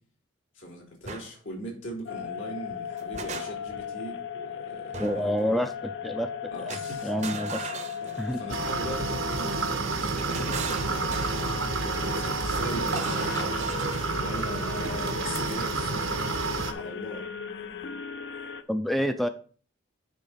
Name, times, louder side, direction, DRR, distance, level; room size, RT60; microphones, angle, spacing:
voice 1, 0.5-5.6 6.5-11.2 12.0-16.3 16.5-17.2, right 1 dB, 80° left, 3.2 m, -40 dB
sound 1, 1.0-1.3 2.7-3.8 4.9-5.4 6.7-8.5 9.8-11.6 12.9-14.2, right 5 dB, 35° right, 0.7 m, -39 dB
sound 2, 2.1-18.6, left 7 dB, 60° left, 0.6 m, -37 dB
voice 2, 5.0-5.7 6.0-6.3 6.6-6.8 7.0-7.6 8.2-8.4 18.7-19.3, equal, ahead, 0.4 m, -27 dB
sound 3, 8.5-16.7, right 3 dB, 90° right, 1.1 m, -29 dB
9.8 x 3.9 x 5.6 m
head